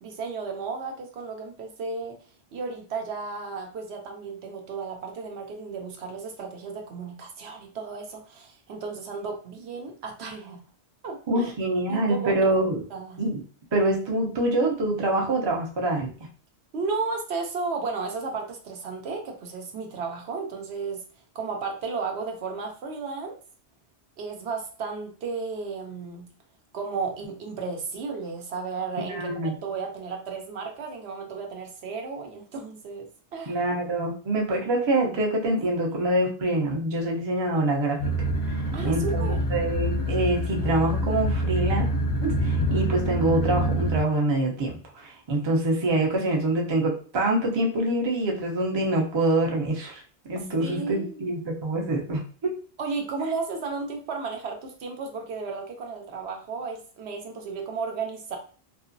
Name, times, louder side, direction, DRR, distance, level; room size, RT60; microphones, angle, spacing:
voice 1, 0.0-2.2 2.5-10.6 11.0-11.5 11.9-12.3 12.9-13.2 16.7-21.0 21.3-23.4 24.2-26.3 26.7-33.6 38.7-39.4 50.6-51.2 52.8-58.4, right 4 dB, 75° right, 3 dB, 0.9 m, -34 dB
voice 2, 11.3-12.8 13.2-13.4 13.7-16.1 29.1-29.6 33.5-41.9 42.2-50.0 50.3-52.6, right 2 dB, 35° right, 0 dB, 0.5 m, -25 dB
sound 1, 38.0-44.0, equal, 65° left, 0.8 m, -26 dB
2.9 x 2.4 x 2.5 m, 0.41 s
omnidirectional pair, 1.1 m